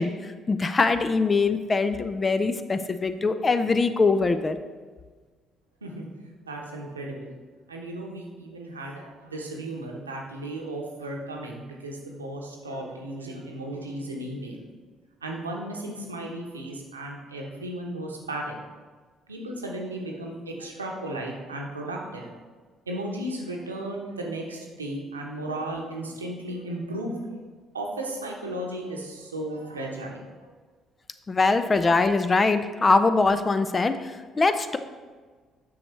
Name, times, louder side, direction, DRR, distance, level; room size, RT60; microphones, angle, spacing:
voice 1, 0.0-4.6 31.3-34.8, left 3 dB, 30° left, 10 dB, 0.5 m, -23 dB
voice 2, 6.4-7.3 7.7-14.6 15.2-18.6 19.3-22.3 22.9-27.4 27.7-30.5, right 1 dB, 80° right, 0 dB, 0.9 m, -35 dB
9.7 x 6.3 x 3.2 m, 1.4 s
figure-of-eight pair, 45°, 0 cm